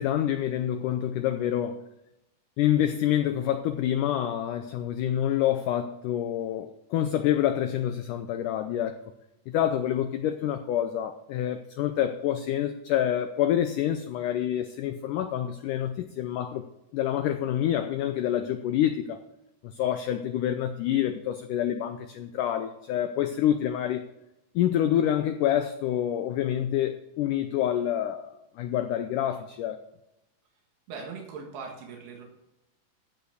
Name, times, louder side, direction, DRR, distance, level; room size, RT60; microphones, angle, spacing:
voice 1, 0.0-1.8 2.6-9.0 9.5-16.7 16.9-19.2 19.6-24.0 24.6-29.8, left 11 dB, 90° left, 8 dB, 1.8 m, -27 dB
voice 2, 30.9-32.2, right 5 dB, 90° right, 0 dB, 3.8 m, -40 dB
14.5 x 5.7 x 6.4 m, 0.89 s
omnidirectional pair, 4.5 m